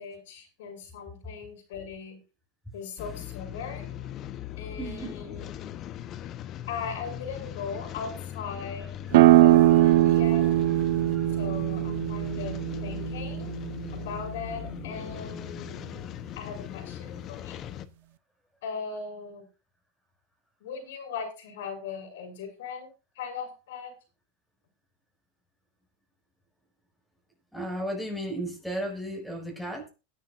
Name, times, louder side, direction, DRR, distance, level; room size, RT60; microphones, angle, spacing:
voice 1, 0.0-2.2 2.7-3.9 4.6-5.7 6.7-8.9 9.4-10.4 11.3-13.6 13.9-17.6 18.6-19.5 20.6-23.9, left 6 dB, 75° left, 5 dB, 6.8 m, -39 dB
sound 1, 3.0-17.9, left 11 dB, 35° left, 1.0 m, -39 dB
voice 2, 4.8-5.1 9.3-10.2 11.0-11.4 27.5-29.9, right 1 dB, ahead, 0 dB, 6.4 m, -35 dB
sound 2, 9.1-14.5, right 16 dB, 70° right, 1.0 m, -21 dB
22.0 x 10.0 x 2.7 m, 0.31 s
supercardioid pair, 130°, 0 cm